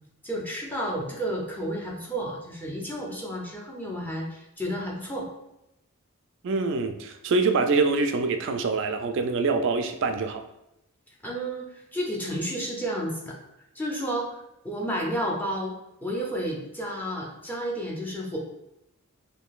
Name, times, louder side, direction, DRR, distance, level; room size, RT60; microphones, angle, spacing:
voice 1, 0.2-5.3 11.2-13.3 13.7-14.4 14.6-15.8 16.0-18.4, equal, 10° left, -3 dB, 0.5 m, -31 dB
voice 2, 6.4-10.4, right 3 dB, 55° right, 7 dB, 0.3 m, -25 dB
3.6 x 2.7 x 2.3 m, 0.85 s
head